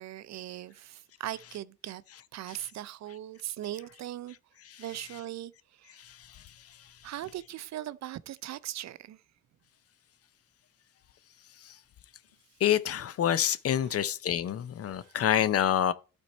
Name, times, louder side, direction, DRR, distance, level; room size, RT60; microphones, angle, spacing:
voice 1, 0.0-2.0 2.3-4.4 4.8-6.0 7.0-9.2 13.7-14.0 15.0-15.2, right 13 dB, 65° right, 0.6 m, -39 dB
voice 2, 12.6-15.9, left 10 dB, 50° left, 0.6 m, -26 dB
11.5 x 4.4 x 4.3 m
cardioid pair, 90°, 30 cm